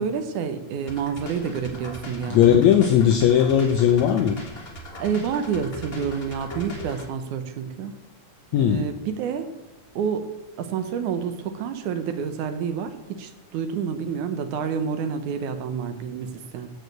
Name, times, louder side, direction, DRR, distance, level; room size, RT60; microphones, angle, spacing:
voice 1, 0.0-2.6 5.0-8.0 8.6-9.5 10.0-10.3 10.6-16.7, right 7 dB, 75° right, 9 dB, 2.2 m, -28 dB
sound 1, 0.9-7.1, equal, 35° left, 1.0 m, -39 dB
voice 2, 2.3-4.4 8.5-8.9, left 9 dB, 75° left, 7 dB, 1.8 m, -18 dB
14.0 x 4.9 x 7.9 m, 0.95 s
omnidirectional pair, 3.8 m